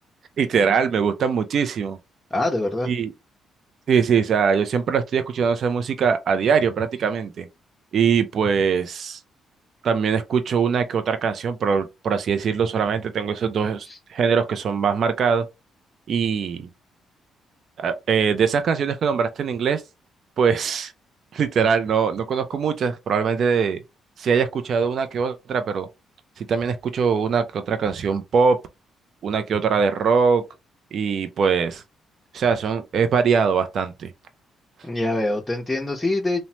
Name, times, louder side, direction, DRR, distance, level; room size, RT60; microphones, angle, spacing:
voice 1, 0.4-2.0 2.9-3.1 3.9-7.5 7.9-9.2 9.8-15.4 16.1-16.7 17.8-19.8 20.4-20.9 21.3-23.8 24.2-25.9 26.4-28.6 29.2-30.4 30.9-31.8 32.3-34.1, right 6 dB, 60° right, 0.3 m, -22 dB
voice 2, 2.3-2.9 13.8-14.0 34.8-36.4, left 2 dB, 15° left, 0.6 m, -24 dB
3.0 x 2.0 x 2.8 m
cardioid pair, 90°, 0 cm